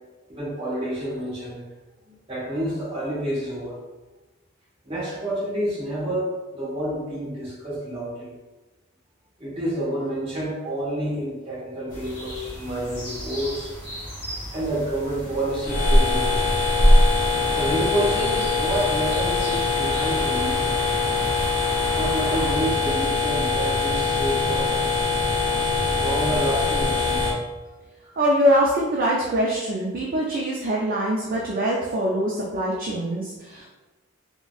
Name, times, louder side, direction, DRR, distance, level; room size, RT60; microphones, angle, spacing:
voice 1, 0.3-1.6 2.1-3.8 4.8-8.3 9.4-13.7 14.5-16.5 17.5-20.8 21.5-24.7 26.0-27.4, right 1 dB, 25° right, -8 dB, 1.1 m, -29 dB
sound 1, 11.9-22.5, equal, 20° left, 1.0 m, -37 dB
sound 2, 15.6-27.3, left 2 dB, 60° left, 0.6 m, -22 dB
voice 2, 28.2-33.7, equal, 40° right, -3 dB, 0.3 m, -23 dB
3.7 x 2.1 x 2.3 m, 1.2 s
head